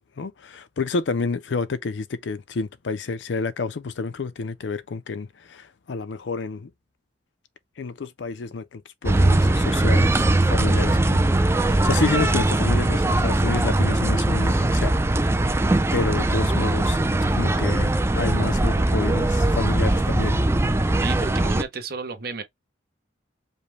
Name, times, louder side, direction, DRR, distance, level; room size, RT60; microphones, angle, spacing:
voice 1, 0.2-6.7 7.8-11.4 11.6-14.9 15.9-17.0 17.3-20.5, left 4 dB, 75° left, 0.5 m, -29 dB
sound 1, 9.0-21.6, right 2 dB, 15° right, 0.4 m, -20 dB
voice 2, 21.0-22.4, right 5 dB, 55° right, 0.9 m, -32 dB
5.1 x 2.2 x 3.2 m
head